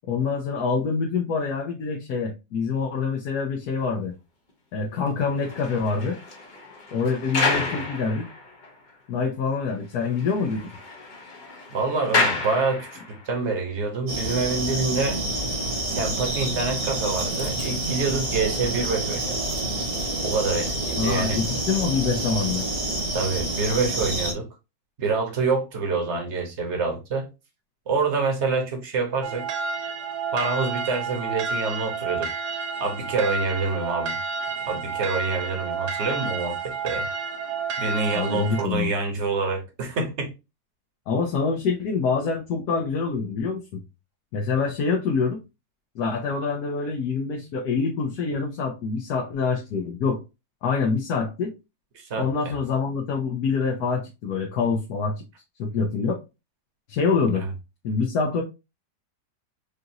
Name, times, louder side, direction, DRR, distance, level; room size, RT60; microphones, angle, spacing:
voice 1, 0.1-4.1 4.7-6.2 6.9-8.3 9.1-10.7 20.9-22.7 38.1-38.9 41.1-43.8 44.3-45.4 45.9-50.2 50.6-51.5 52.2-55.2 55.6-56.2 56.9-57.4 57.8-58.4, left 5 dB, 70° left, 1.3 m, -25 dB
sound 1, 5.2-8.9 9.2-9.3 9.7-9.8 10.0-13.3 14.0-14.2, left 3 dB, 35° left, 0.9 m, -30 dB
voice 2, 11.7-15.2 15.8-19.4 20.2-21.4 23.1-24.5 25.0-27.3 27.9-29.5 30.3-32.3 32.8-34.2 34.7-37.1 37.8-40.3 51.9-52.6 57.4-57.5, right 4 dB, 45° right, 1.3 m, -26 dB
sound 2, 14.1-24.3, right 1 dB, 65° right, 1.8 m, -28 dB
sound 3, 29.2-38.6, right 5 dB, 80° right, 1.4 m, -30 dB
5.0 x 2.5 x 2.8 m
omnidirectional pair, 1.8 m